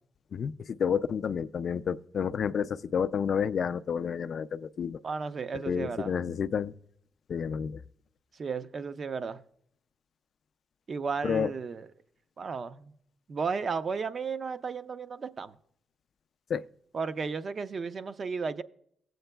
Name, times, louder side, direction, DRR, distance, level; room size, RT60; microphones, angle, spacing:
voice 1, 0.3-5.0 5.7-6.7 7.3-7.8 11.2-11.5 16.5-16.6, left 7 dB, 60° left, 0.3 m, -30 dB
voice 2, 5.0-6.1 8.3-9.4 10.9-11.9 12.4-12.9 13.3-15.6 16.9-18.6, right 5 dB, 45° right, 0.5 m, -34 dB
16.0 x 7.8 x 2.2 m
cardioid pair, 90°, 0 cm